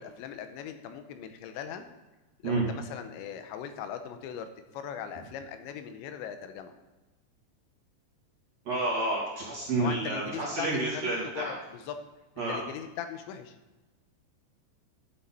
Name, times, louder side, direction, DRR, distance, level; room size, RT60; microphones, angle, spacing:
voice 1, 0.0-1.9 2.4-4.5 4.7-6.7 9.8-12.0 12.5-13.6, left 8 dB, 85° left, 8 dB, 3.0 m, -39 dB
voice 2, 8.6-11.5 12.4-12.6, right 2 dB, 45° right, -5 dB, 2.8 m, -29 dB
12.5 x 7.4 x 4.2 m, 1.1 s
omnidirectional pair, 5.2 m